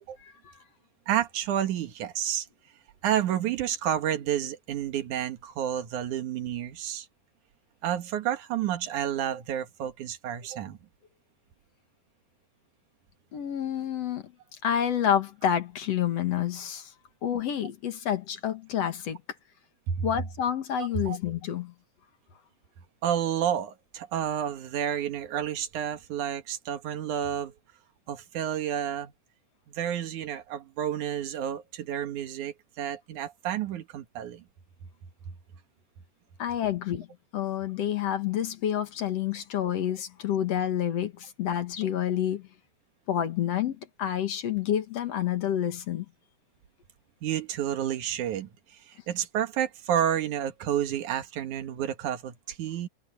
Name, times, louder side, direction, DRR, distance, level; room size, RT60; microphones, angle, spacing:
voice 1, 0.2-0.5 13.3-14.3 14.6-16.9 17.2-19.2 20.0-21.7 36.4-37.1 37.3-42.5 43.1-46.1, left 10 dB, 55° left, 2.3 m, -29 dB
voice 2, 1.1-2.5 3.0-7.1 7.8-10.8 19.9-20.1 20.8-21.2 23.0-27.5 28.1-29.1 29.7-34.4 47.2-52.9, right 10 dB, 70° right, 2.8 m, -30 dB
omnidirectional pair, 3.7 m